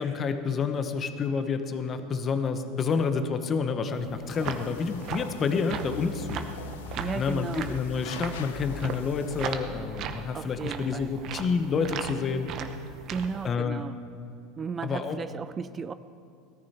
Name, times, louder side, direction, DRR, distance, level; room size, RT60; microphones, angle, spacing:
voice 1, 0.0-6.5 7.1-12.5 13.4-13.8 14.8-15.2, left 5 dB, 30° left, 8 dB, 1.0 m, -29 dB
sound 1, 3.9-13.5, right 7 dB, 45° right, 0.9 m, -38 dB
sound 2, 4.3-9.5, left 8 dB, 90° left, 0.7 m, -45 dB
sound 3, 5.7-12.0, left 3 dB, 45° left, 1.5 m, -44 dB
voice 2, 7.0-7.7 10.3-11.2 13.1-14.0 14.6-15.9, right 5 dB, 20° right, 14 dB, 0.3 m, -35 dB
18.0 x 13.5 x 4.3 m, 2.4 s
supercardioid pair, 135°, 0 cm